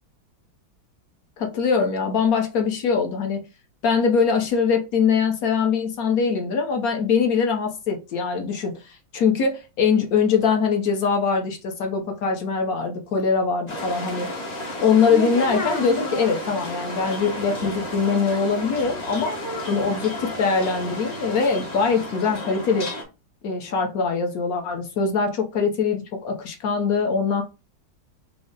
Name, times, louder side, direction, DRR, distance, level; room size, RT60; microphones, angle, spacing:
voice 1, 1.4-3.4 3.8-14.3 14.8-19.4 19.7-22.9 23.4-27.4, left 5 dB, 60° left, 1.0 m, -22 dB
sound 1, 13.7-23.0, left 1 dB, 35° left, 0.6 m, -32 dB
4.9 x 2.0 x 3.8 m
omnidirectional pair, 2.1 m